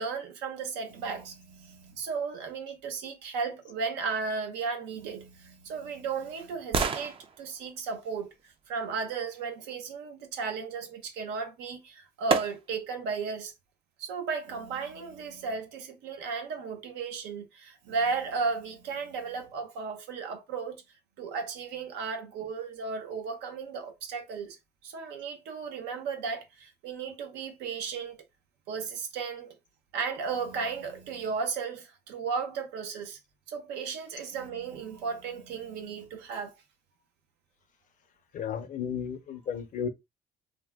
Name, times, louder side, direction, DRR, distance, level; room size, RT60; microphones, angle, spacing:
voice 1, 0.0-13.5 14.0-20.8 21.2-24.6 24.8-28.2 28.7-29.5 29.9-33.2 33.5-36.5, right 5 dB, 90° right, 0.8 m, -35 dB
sound 1, 5.2-9.3 11.4-11.5 12.3-13.0 13.5-13.6, right 5 dB, 30° right, 0.4 m, -34 dB
voice 2, 38.3-39.9, left 7 dB, 50° left, 0.6 m, -33 dB
2.7 x 2.2 x 3.4 m
cardioid pair, 110°, 17 cm